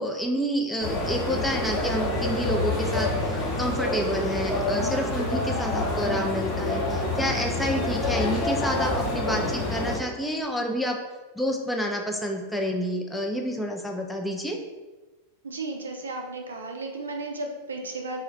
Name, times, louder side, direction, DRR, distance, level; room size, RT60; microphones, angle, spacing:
voice 1, 0.0-11.0 11.4-14.6, equal, 5° left, 2 dB, 0.4 m, -29 dB
sound 1, 0.8-10.0, left 2 dB, 35° left, 0.8 m, -27 dB
voice 2, 15.4-18.2, right 2 dB, 70° right, 2 dB, 0.4 m, -34 dB
2.3 x 2.0 x 3.8 m, 1.2 s
figure-of-eight pair, 90°, 0 cm